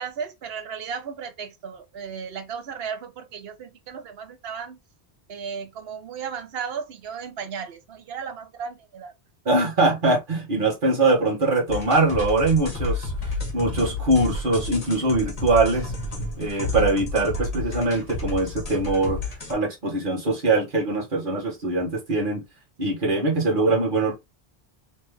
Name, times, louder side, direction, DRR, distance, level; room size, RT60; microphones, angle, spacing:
voice 1, 0.0-4.8 5.3-9.1 16.5-16.6, right 6 dB, 65° right, 0.9 m, -35 dB
voice 2, 9.4-13.1 13.5-15.9 16.4-19.2 19.5-22.4 22.8-24.1, right 2 dB, 50° right, 1.6 m, -22 dB
sound 1, 11.7-19.5, left 3 dB, 35° left, 1.3 m, -31 dB
3.3 x 3.2 x 3.2 m
omnidirectional pair, 1.1 m